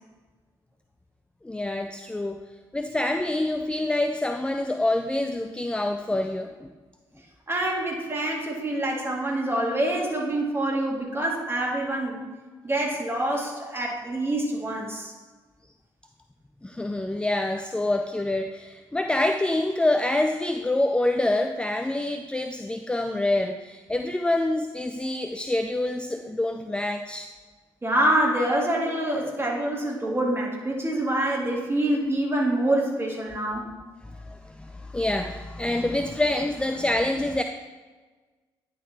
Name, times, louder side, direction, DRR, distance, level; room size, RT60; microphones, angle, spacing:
voice 1, 1.4-2.4 2.7-6.7 16.6-27.3 34.1-37.4, left 1 dB, 10° left, 6 dB, 0.4 m, -26 dB
voice 2, 7.5-12.2 12.6-15.1 27.8-33.7, right 1 dB, 20° right, -1 dB, 2.1 m, -26 dB
10.0 x 4.0 x 4.0 m, 1.4 s
hypercardioid pair, 50°, 12 cm